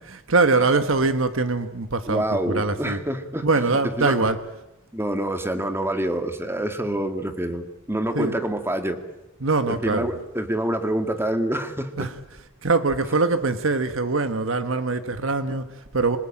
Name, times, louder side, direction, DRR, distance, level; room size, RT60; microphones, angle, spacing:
voice 1, 0.0-3.0 3.4-4.4 8.1-8.4 9.4-10.1 12.0-12.1 12.6-16.2, right 3 dB, 75° right, 9 dB, 1.4 m, -23 dB
voice 2, 2.1-3.5 4.0-4.2 4.9-9.0 9.7-11.9, right 1 dB, 10° right, 7 dB, 1.9 m, -26 dB
26.5 x 19.0 x 8.8 m, 0.96 s
head